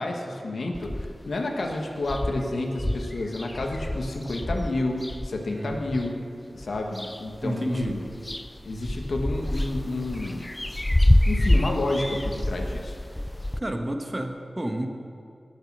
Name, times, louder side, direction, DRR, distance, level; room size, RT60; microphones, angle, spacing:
voice 1, 0.0-6.1 6.5-8.1 8.6-10.4 11.3-12.9, left 2 dB, 85° left, 1 dB, 1.5 m, -30 dB
sound 1, 0.7-1.3 1.7-1.8 2.0-6.1 6.6-7.4 7.7-13.6, left 1 dB, 20° left, 0.4 m, -26 dB
voice 2, 5.5-5.8 7.4-8.0 13.6-14.9, right 1 dB, 25° right, 4 dB, 1.3 m, -30 dB
19.5 x 6.6 x 6.1 m, 2.5 s
wide cardioid pair, 70°, 0 cm